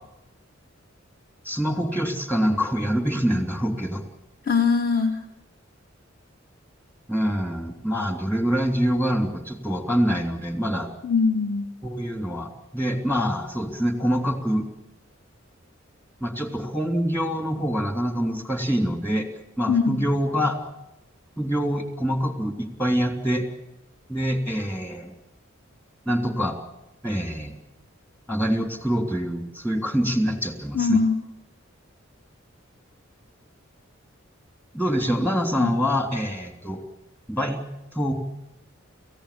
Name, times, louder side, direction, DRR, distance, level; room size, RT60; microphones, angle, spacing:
voice 1, 1.4-4.0 7.1-10.9 11.8-14.7 16.2-19.3 19.6-20.6 21.4-23.4 24.1-25.1 26.0-26.6 27.0-27.5 28.3-31.0 34.7-36.8 37.3-37.6 37.9-38.1, equal, 10° left, 6 dB, 3.2 m, -25 dB
voice 2, 4.4-5.2 11.0-11.7 19.7-20.1 30.7-31.1 35.6-35.7, left 5 dB, 50° left, 4 dB, 2.4 m, -22 dB
29.5 x 15.5 x 8.6 m, 0.90 s
head